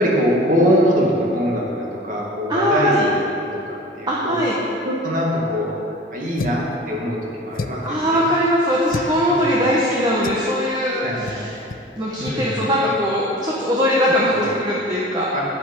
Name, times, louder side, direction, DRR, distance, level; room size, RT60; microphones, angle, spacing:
voice 1, 0.0-4.4 4.8-5.7 6.1-8.3 9.3-9.6 11.0-11.7 12.2-12.7 14.3-14.5 15.3-15.4, equal, 50° right, -3 dB, 2.2 m, -23 dB
voice 2, 2.5-3.1 4.1-4.6 7.8-11.5 12.0-15.3, equal, 25° right, -6 dB, 1.3 m, -20 dB
sound 1, 6.4-6.7 7.5-8.0 8.9-9.1 10.2-10.5 11.3-11.4 11.7-11.9 12.2-12.4, left 3 dB, 50° left, 0.4 m, -30 dB
11.0 x 8.6 x 5.5 m, 2.7 s
head